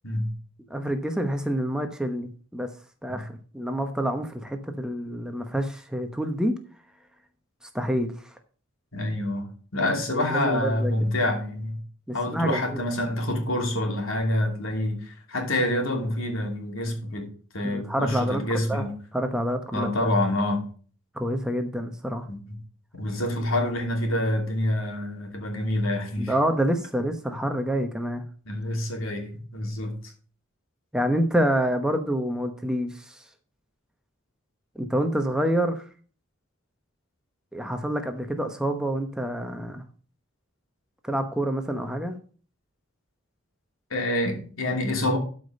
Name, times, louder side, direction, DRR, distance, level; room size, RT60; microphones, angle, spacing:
voice 1, 0.7-2.7 3.0-6.5 7.7-8.1 10.1-10.9 12.1-12.8 17.6-18.8 19.1-19.9 21.1-22.3 26.2-28.2 30.9-33.2 34.7-35.8 37.5-39.8 41.0-42.2, equal, 5° right, 0.9 m, -27 dB
voice 2, 8.9-9.5 9.7-11.8 12.1-18.9 19.7-20.6 22.3-22.6 22.9-26.3 28.5-30.0 43.9-45.2, left 1 dB, 85° left, 2.8 m, -27 dB
12.5 x 5.1 x 5.3 m
head